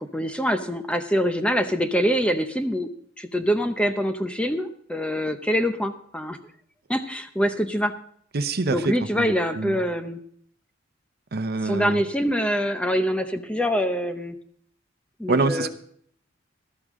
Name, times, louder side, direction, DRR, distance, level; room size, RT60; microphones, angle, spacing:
voice 1, 0.1-2.9 3.2-6.4 6.9-7.9 8.7-10.2 11.6-14.4 15.2-15.7, equal, 5° left, 8 dB, 0.7 m, -24 dB
voice 2, 8.3-8.8 9.1-9.7 11.3-12.0 15.3-15.7, right 3 dB, 55° right, 9 dB, 0.8 m, -25 dB
13.0 x 12.5 x 3.7 m, 0.63 s
head